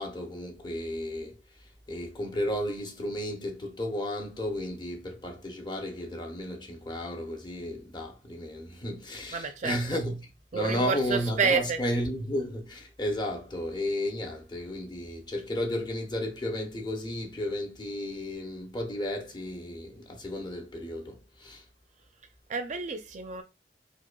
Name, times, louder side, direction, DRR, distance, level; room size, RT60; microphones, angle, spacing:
voice 1, 0.0-1.4 1.9-21.6, left 1 dB, 25° left, 0.6 m, -33 dB
voice 2, 9.3-9.8 10.5-11.8 22.5-23.4, right 5 dB, 45° right, 0.5 m, -29 dB
4.8 x 2.1 x 2.2 m
head